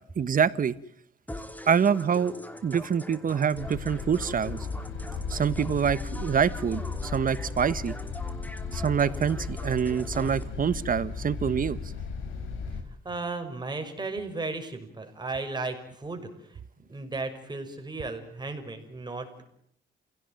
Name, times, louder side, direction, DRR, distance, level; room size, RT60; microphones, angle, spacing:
voice 1, 0.2-0.7 1.7-2.3 2.6-4.6 5.3-7.9 8.7-11.8, right 7 dB, 45° right, 16 dB, 1.3 m, -26 dB
sound 1, 1.3-10.4, left 1 dB, 10° left, 2.9 m, -43 dB
sound 2, 3.5-12.8, left 5 dB, 85° left, 5.0 m, -36 dB
voice 2, 13.0-19.4, right 3 dB, 20° right, 5 dB, 6.2 m, -35 dB
29.5 x 17.0 x 9.1 m, 0.73 s
cardioid pair, 90°, 20 cm